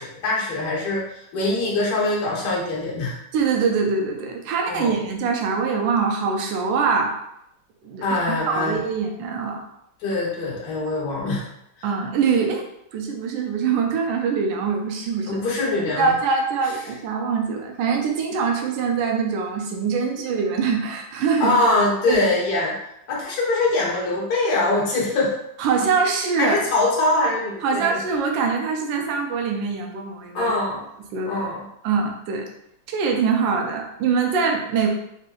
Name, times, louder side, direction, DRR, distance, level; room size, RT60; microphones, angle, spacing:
voice 1, 0.0-3.2 4.7-5.0 8.0-8.8 10.0-11.5 15.3-16.1 21.4-22.7 23.1-25.3 26.4-28.0 30.3-30.8 31.2-31.7, left 2 dB, 55° left, -4 dB, 1.3 m, -23 dB
voice 2, 3.3-7.2 7.8-9.6 11.8-12.6 12.9-15.4 16.0-21.5 22.1-22.2 25.6-26.6 27.6-30.5 31.1-31.3 31.8-32.5 32.9-34.9, right 5 dB, 75° right, 2 dB, 1.2 m, -23 dB
4.3 x 2.5 x 2.3 m, 0.78 s
omnidirectional pair, 2.2 m